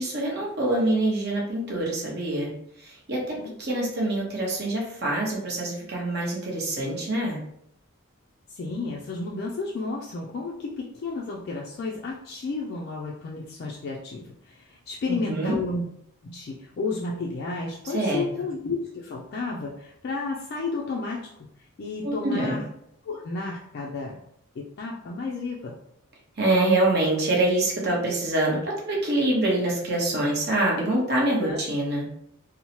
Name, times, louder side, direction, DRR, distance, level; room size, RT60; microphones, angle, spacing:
voice 1, 0.0-7.4 15.1-15.6 17.9-18.2 22.0-22.6 26.4-32.1, right 1 dB, 50° right, -3 dB, 0.8 m, -25 dB
voice 2, 8.5-15.9 16.2-21.3 21.8-22.6 23.0-24.2 24.6-25.8 31.4-31.6, left 3 dB, 50° left, -2 dB, 0.3 m, -32 dB
3.0 x 2.0 x 2.7 m, 0.73 s
head